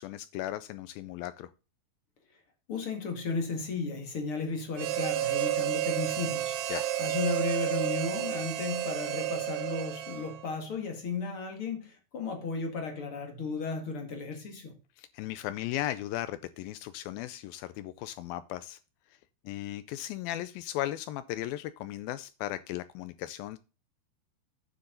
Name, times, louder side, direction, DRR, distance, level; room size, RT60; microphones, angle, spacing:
voice 1, 0.0-1.5 6.7-6.9 15.0-18.8 19.5-23.6, left 14 dB, 85° left, 2.1 m, -36 dB
voice 2, 2.7-6.6 7.0-14.8, left 4 dB, 45° left, 2.2 m, -34 dB
Harmonica, 4.8-10.6, right 13 dB, 90° right, 3.1 m, -31 dB
9.6 x 6.8 x 3.8 m
omnidirectional pair, 4.7 m